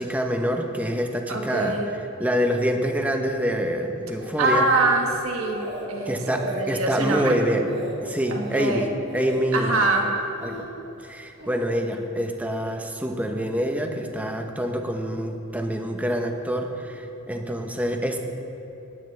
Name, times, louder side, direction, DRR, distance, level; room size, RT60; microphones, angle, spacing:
voice 1, 0.0-1.8 2.2-4.7 6.1-7.7 8.0-9.8 10.4-10.6 11.0-18.2, equal, 5° right, 3 dB, 0.8 m, -26 dB
voice 2, 1.3-1.9 4.4-7.3 8.3-8.9 9.5-10.2, right 2 dB, 75° right, 2 dB, 1.4 m, -24 dB
Speech, 4.2-5.2 5.5-5.9 6.2-6.6 7.0-7.3 7.7-8.0 8.3-8.7 9.1-9.4 9.8-10.6 11.4-11.6, right 1 dB, 55° right, 1.9 m, -35 dB
18.5 x 9.2 x 3.3 m, 3.0 s
head